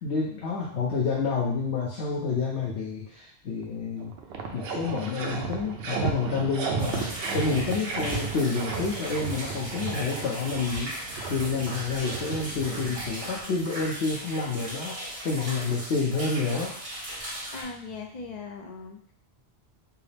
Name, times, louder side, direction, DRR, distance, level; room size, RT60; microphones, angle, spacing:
voice 1, 0.0-4.1 4.5-10.9 11.3-14.9 15.2-16.7, left 4 dB, 80° left, -3 dB, 1.0 m, -29 dB
sound 1, 3.6-3.7 4.0-13.4, right 5 dB, 70° right, 0.8 m, -34 dB
sound 2, 6.8-17.6, equal, 45° right, 1.2 m, -38 dB
voice 2, 17.5-19.1, left 4 dB, 50° left, 2 dB, 0.5 m, -39 dB
4.7 x 2.0 x 3.3 m, 0.62 s
omnidirectional pair, 1.1 m